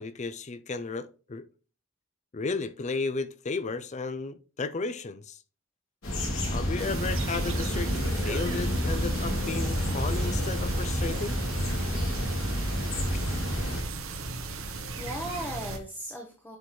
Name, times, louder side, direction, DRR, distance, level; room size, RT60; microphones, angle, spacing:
voice 1, 0.0-1.4 2.3-5.4 6.5-7.9 8.2-11.4, left 3 dB, 35° left, 0.5 m, -33 dB
sound 1, 6.0-13.8, equal, 75° left, 3.0 m, -29 dB
sound 2, 6.8-15.8, right 3 dB, 75° right, 1.1 m, -36 dB
voice 2, 14.4-16.6, equal, 10° left, 0.9 m, -38 dB
10.5 x 4.5 x 3.2 m
head